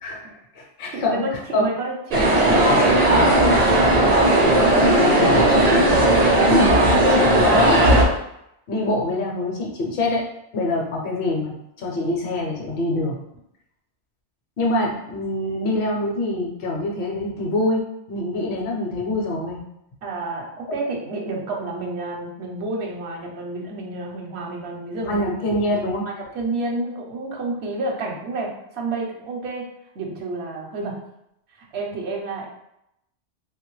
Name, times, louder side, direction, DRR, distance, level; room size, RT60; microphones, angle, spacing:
voice 1, 0.0-1.7 4.8-6.1 6.5-6.8 7.1-8.1 8.7-10.2 10.5-13.2 14.6-19.6 20.7-20.8 25.0-26.1, left 1 dB, 60° left, -1 dB, 0.7 m, -25 dB
voice 2, 0.9-4.0 5.1-5.7 20.0-25.2 26.1-29.7 29.9-31.0 31.6-32.5, right 2 dB, 65° right, 0 dB, 0.9 m, -30 dB
sound 1, 2.1-8.0, right 1 dB, 40° right, 0.6 m, -16 dB
3.1 x 2.3 x 3.0 m, 0.80 s
omnidirectional pair, 1.2 m